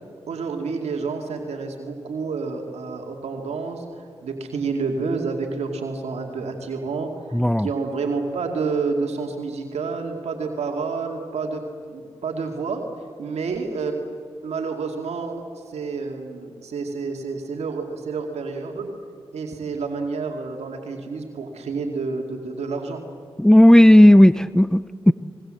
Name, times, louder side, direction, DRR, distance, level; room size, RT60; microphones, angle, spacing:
voice 1, 0.3-12.8 13.2-14.1 14.4-18.9 19.3-23.0, right 4 dB, 85° right, 3 dB, 2.4 m, -29 dB
voice 2, 7.3-7.7 23.4-25.1, left 1 dB, 5° left, 15 dB, 0.6 m, -12 dB
25.0 x 21.5 x 7.7 m, 2.2 s
supercardioid pair, 40°, 11 cm